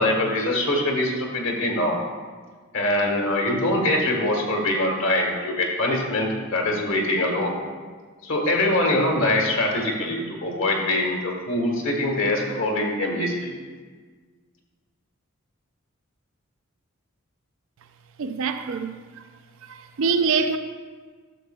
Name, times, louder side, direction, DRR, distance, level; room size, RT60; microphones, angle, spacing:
voice 1, 0.0-2.0 2.7-7.6 8.2-13.5, left 1 dB, 65° left, 1.4 m, -23 dB
voice 2, 18.2-19.0 19.6-20.6, right 5 dB, 70° right, 0.4 m, -24 dB
11.5 x 6.7 x 2.2 m
head